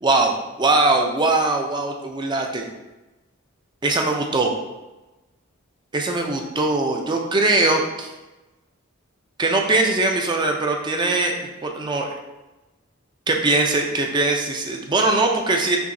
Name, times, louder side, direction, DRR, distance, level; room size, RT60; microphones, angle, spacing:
voice 1, 0.0-2.7 3.8-4.5 5.9-8.1 9.4-12.1 13.3-15.8, right 2 dB, 20° right, 2 dB, 0.4 m, -21 dB
5.8 x 2.8 x 2.6 m, 1.1 s
head